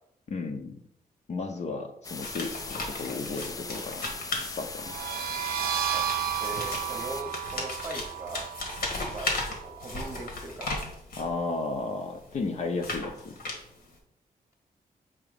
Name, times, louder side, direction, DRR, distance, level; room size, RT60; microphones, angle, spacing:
voice 1, 0.3-0.7 1.3-4.0 4.6-4.9 11.2-13.4, left 3 dB, 45° left, 5 dB, 0.7 m, -33 dB
sound 1, 2.0-7.2, left 3 dB, 25° left, 0.4 m, -39 dB
sound 2, 2.2-5.1 5.8-11.4 12.0-13.9, left 2 dB, 80° left, 1.6 m, -36 dB
sound 3, 4.8-10.2, right 10 dB, 75° right, 0.6 m, -33 dB
voice 2, 6.4-8.5 8.8-10.8, right 1 dB, 20° right, -1 dB, 1.0 m, -40 dB
7.0 x 3.0 x 5.1 m, 0.73 s
wide cardioid pair, 135°, 15 cm